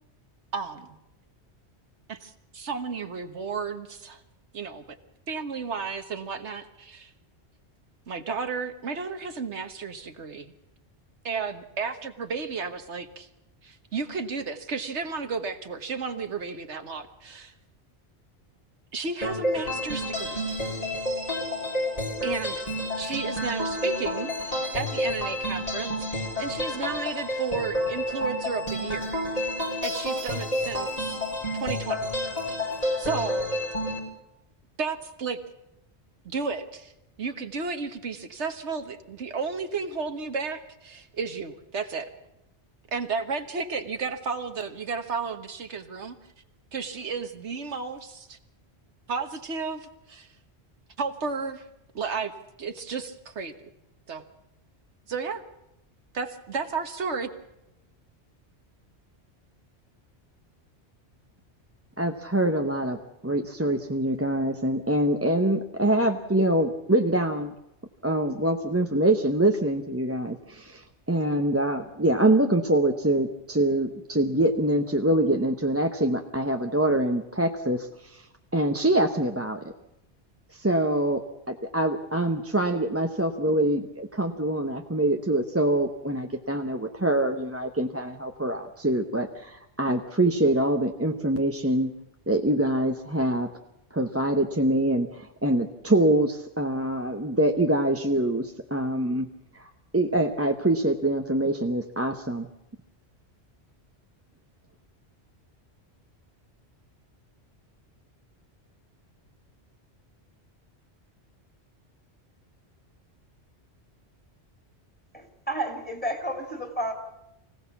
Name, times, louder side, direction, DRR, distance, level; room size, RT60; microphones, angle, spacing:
voice 1, 0.5-0.9 2.1-4.2 4.5-4.8 5.3-7.1 8.1-10.5 11.2-13.3 13.6-17.5 18.9-20.5 22.2-22.7 23.0-29.2 29.8-31.2 31.6-32.0 32.5-32.6 33.0-33.5 34.8-35.4 36.3-36.9 37.2-42.1 42.9-46.2 46.7-48.4 49.1-50.3 51.0-51.6 51.9-52.3 52.6-53.5 54.1-54.2 55.1-55.4 56.1-57.3, right 5 dB, 85° right, 7 dB, 1.7 m, -33 dB
sound 1, 19.2-34.0, left 1 dB, 35° left, 3.7 m, -30 dB
voice 2, 62.0-67.5 68.0-78.3 78.5-79.6 80.5-81.2 81.5-91.9 92.3-93.5 93.9-99.3 99.5-102.5, right 1 dB, 15° right, 4 dB, 0.8 m, -25 dB
voice 3, 115.1-116.9, right 1 dB, 10° left, 3 dB, 3.2 m, -31 dB
24.5 x 16.5 x 7.2 m, 0.88 s
omnidirectional pair, 1.1 m